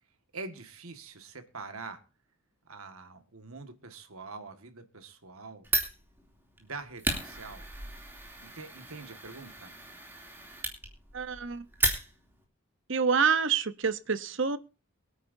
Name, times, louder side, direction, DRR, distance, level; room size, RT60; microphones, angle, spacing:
voice 1, 0.3-2.0 2.7-5.7 6.6-7.7 8.4-9.7, right 3 dB, 85° right, 1.8 m, -44 dB
Fire, 5.6-12.4, right 1 dB, 10° right, 2.8 m, -35 dB
voice 2, 11.1-11.7 12.9-14.6, right 6 dB, 60° right, 0.9 m, -27 dB
23.0 x 9.2 x 2.7 m
head